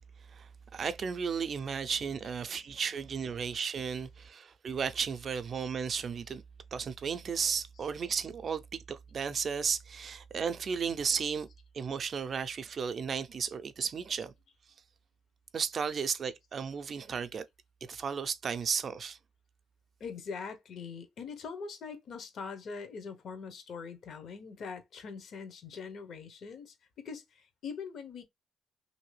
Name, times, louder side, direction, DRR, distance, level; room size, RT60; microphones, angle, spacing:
voice 1, 0.3-6.4 6.7-11.5 11.7-14.3 15.5-17.4 17.8-19.2, right 6 dB, 50° right, 0.4 m, -34 dB
voice 2, 20.0-28.2, left 5 dB, 65° left, 0.7 m, -42 dB
2.9 x 2.6 x 3.1 m
cardioid pair, 90°, 0 cm